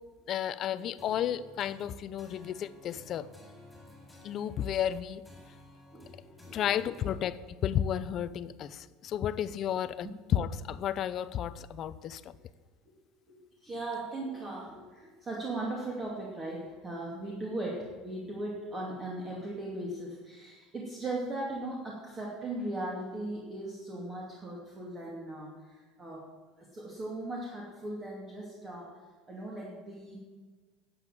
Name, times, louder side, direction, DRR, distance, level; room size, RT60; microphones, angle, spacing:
voice 1, 0.3-3.3 4.2-5.2 6.5-12.2, left 10 dB, 40° left, 15 dB, 0.6 m, -32 dB
sound 1, 1.0-7.1, left 1 dB, 5° left, 3.9 m, -54 dB
voice 2, 13.3-26.3 26.6-28.9 29.3-30.2, right 2 dB, 20° right, -3 dB, 2.6 m, -38 dB
11.5 x 7.9 x 9.1 m, 1.4 s
supercardioid pair, 135°, 0 cm